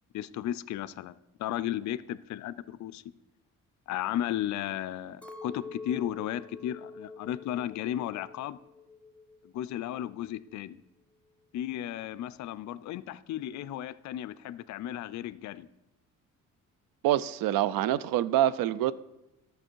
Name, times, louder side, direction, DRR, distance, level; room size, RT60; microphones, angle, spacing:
voice 1, 0.1-1.1 1.4-3.0 3.9-8.6 9.4-10.8 11.5-15.7, left 12 dB, 60° left, 0.4 m, -34 dB
Chink clink, 5.2-9.6 9.8-10.6, left 3 dB, 5° left, 0.6 m, -46 dB
voice 2, 17.0-18.9, right 12 dB, 85° right, 0.5 m, -26 dB
11.5 x 6.6 x 4.5 m
cardioid pair, 115°, 33 cm